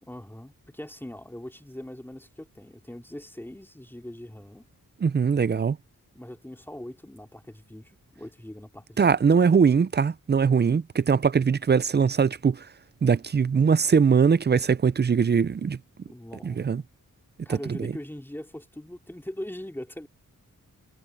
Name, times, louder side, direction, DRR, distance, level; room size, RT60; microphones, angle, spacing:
voice 1, 0.0-4.6 6.1-9.3 16.1-16.6 17.4-20.1, left 1 dB, 5° left, 2.7 m, -41 dB
voice 2, 5.0-5.8 9.0-12.7 13.0-15.8 16.4-16.8 17.5-17.9, right 6 dB, 30° right, 0.4 m, -21 dB
wide cardioid pair, 110°, 33 cm